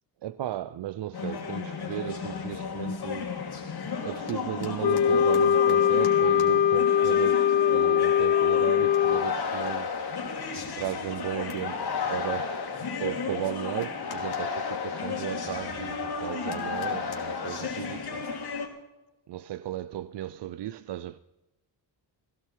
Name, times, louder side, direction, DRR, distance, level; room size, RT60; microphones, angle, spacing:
voice 1, 0.2-3.3 4.0-9.9 10.8-18.2 19.3-21.2, right 12 dB, 70° right, 0.6 m, -35 dB
sound 1, 1.1-18.7, left 5 dB, 60° left, 2.7 m, -33 dB
Wind instrument woodwind instrument, 4.8-9.3, left 9 dB, 75° left, 0.8 m, -22 dB
16.0 x 16.0 x 4.6 m
wide cardioid pair, 120°, 43 cm